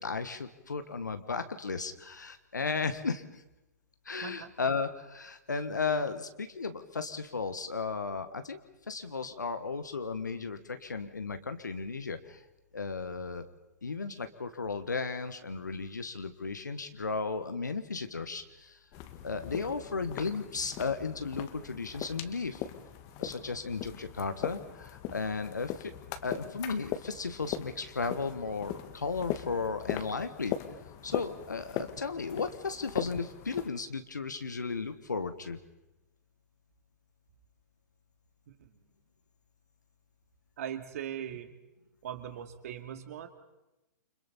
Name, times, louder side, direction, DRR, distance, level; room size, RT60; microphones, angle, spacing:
voice 1, 0.0-3.4 4.0-8.6 8.9-12.4 12.7-13.5 13.8-18.8 19.2-22.6 23.2-25.9 26.2-30.5 31.0-35.6, left 4 dB, 80° left, 9 dB, 1.4 m, -35 dB
voice 2, 4.2-4.5 38.5-38.7 40.6-41.5 42.0-43.3, right 10 dB, 55° right, 8 dB, 2.3 m, -40 dB
sound 1, 18.9-33.7, left 11 dB, 35° left, 1.6 m, -40 dB
29.0 x 26.0 x 4.2 m, 0.98 s
figure-of-eight pair, 115°, 10 cm